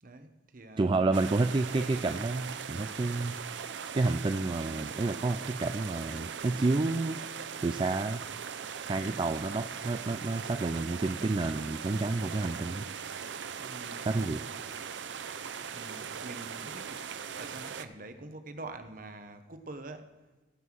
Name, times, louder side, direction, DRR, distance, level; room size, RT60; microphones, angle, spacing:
voice 1, 0.0-1.1 13.6-14.5 15.7-17.1 17.3-20.2, right 2 dB, 50° right, 8 dB, 1.0 m, -46 dB
voice 2, 0.8-3.4 3.9-7.2 7.6-8.2 8.9-12.9 14.1-14.4, right 3 dB, 25° right, 8 dB, 0.3 m, -30 dB
sound 1, 1.1-17.8, right 7 dB, 75° right, 0.6 m, -40 dB
15.5 x 5.6 x 6.1 m, 1.3 s
head